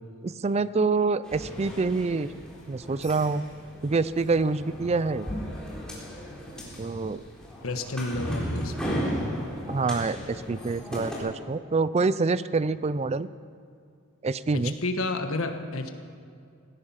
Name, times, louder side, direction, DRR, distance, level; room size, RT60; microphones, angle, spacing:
voice 1, 0.2-2.3 2.7-3.4 3.8-5.3 6.8-7.2 9.7-13.3 14.2-14.7, right 4 dB, 30° right, 16 dB, 0.4 m, -26 dB
sound 1, 1.2-11.2, equal, 5° left, 3.4 m, -36 dB
voice 2, 7.6-9.0 14.8-15.9, left 2 dB, 70° left, 6 dB, 1.4 m, -30 dB
17.0 x 14.5 x 5.7 m, 2.4 s
head